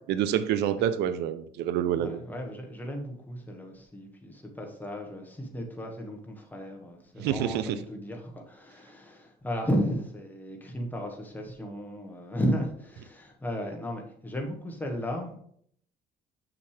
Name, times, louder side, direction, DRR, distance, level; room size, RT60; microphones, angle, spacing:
voice 1, 0.0-2.2 7.2-7.8, right 10 dB, 80° right, 13 dB, 0.6 m, -27 dB
voice 2, 2.0-15.4, equal, 10° left, 2 dB, 1.4 m, -34 dB
6.6 x 5.9 x 3.3 m, 0.66 s
cardioid pair, 110°, 17 cm